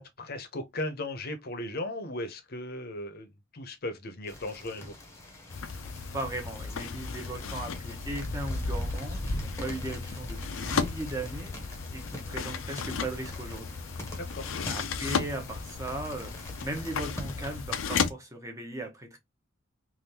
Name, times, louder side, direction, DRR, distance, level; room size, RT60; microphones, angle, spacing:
voice 1, 0.0-4.9 14.2-14.5, left 1 dB, 50° left, 0.8 m, -37 dB
sound 1, 4.3-17.6, left 1 dB, 15° left, 0.9 m, -40 dB
sound 2, 5.5-18.1, left 5 dB, 80° left, 0.5 m, -35 dB
voice 2, 6.1-13.8 14.7-19.2, right 2 dB, 15° right, 0.9 m, -38 dB
3.4 x 2.6 x 2.8 m
head